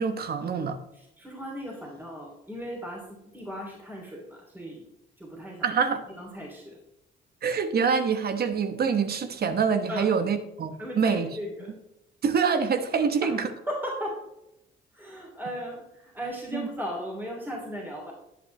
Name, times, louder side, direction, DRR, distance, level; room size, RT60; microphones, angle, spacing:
voice 1, 0.0-0.8 5.6-6.0 7.4-11.3 12.2-13.5 16.5-16.7, right 6 dB, 50° right, 1.1 m, -25 dB
voice 2, 0.9-4.8 5.2-5.7 6.2-6.8 9.9-10.1 10.8-11.7 13.2-13.4 13.7-14.2 14.9-18.1, equal, 10° right, 2.9 m, -36 dB
10.5 x 8.3 x 3.2 m
cardioid pair, 90°, 20 cm